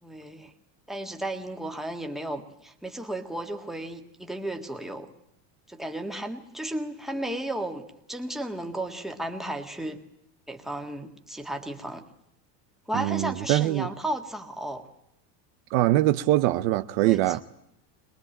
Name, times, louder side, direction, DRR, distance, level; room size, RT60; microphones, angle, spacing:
voice 1, 0.0-0.5 0.9-5.1 5.7-10.0 10.5-12.0 12.9-14.9 17.0-17.4, right 1 dB, ahead, 1.7 m, -34 dB
voice 2, 12.9-13.9 15.7-17.4, right 16 dB, 60° right, 0.9 m, -23 dB
23.0 x 22.0 x 9.0 m
cardioid pair, 170°, 45 cm